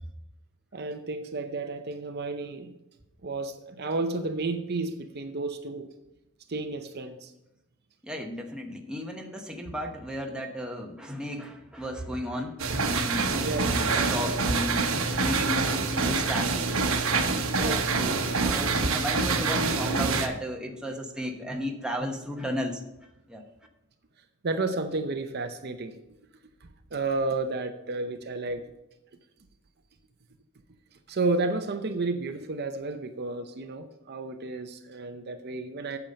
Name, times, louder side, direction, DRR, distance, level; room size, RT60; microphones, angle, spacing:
voice 1, 0.7-2.8 3.2-5.9 6.5-7.3 13.4-13.7 17.6-17.8 24.4-26.0 26.9-28.6 31.1-36.0, right 3 dB, 50° right, 7 dB, 0.7 m, -31 dB
voice 2, 8.0-17.1 17.5-22.8 23.3-23.4, equal, 5° right, 1 dB, 1.0 m, -34 dB
sound 1, 12.6-20.3, right 4 dB, 75° right, 1.1 m, -26 dB
8.9 x 7.1 x 5.2 m, 0.91 s
head